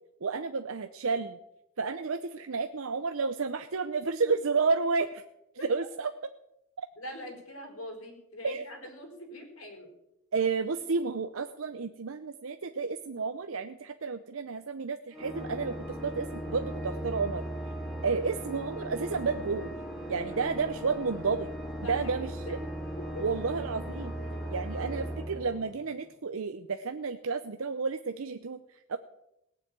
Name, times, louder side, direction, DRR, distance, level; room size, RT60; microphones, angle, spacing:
voice 1, 0.2-1.4 1.8-5.2 5.7-6.1 8.4-8.7 10.3-17.4 18.0-19.7 20.1-21.5 21.9-22.6 23.2-24.2 24.5-29.0, right 4 dB, 80° right, 8 dB, 0.7 m, -31 dB
voice 2, 7.0-9.9 21.8-22.6 23.0-23.3 24.2-24.9, left 1 dB, 85° left, 3 dB, 4.5 m, -44 dB
Organ, 15.1-26.1, right 1 dB, ahead, 2.5 m, -38 dB
18.5 x 7.0 x 9.0 m, 0.85 s
head